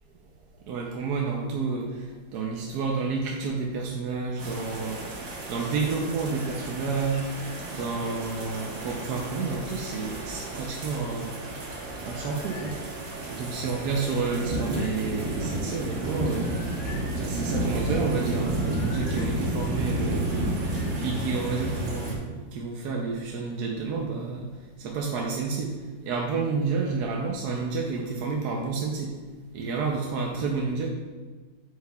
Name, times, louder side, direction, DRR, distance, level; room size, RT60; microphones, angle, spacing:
voice 1, 0.7-2.1 2.3-5.2 5.5-7.2 7.7-11.3 12.0-12.7 13.3-16.6 17.2-20.3 21.0-24.5 24.8-25.8 26.1-29.1 29.5-30.9, right 4 dB, 65° right, 0 dB, 1.2 m, -30 dB
sound 1, 4.4-22.2, right 1 dB, 90° right, 2.2 m, -31 dB
sound 2, 11.9-12.8 14.1-15.0 16.3-17.2 18.4-19.3 20.6-21.5, left 5 dB, 75° left, 1.5 m, -48 dB
8.6 x 6.8 x 2.3 m, 1.4 s
omnidirectional pair, 2.0 m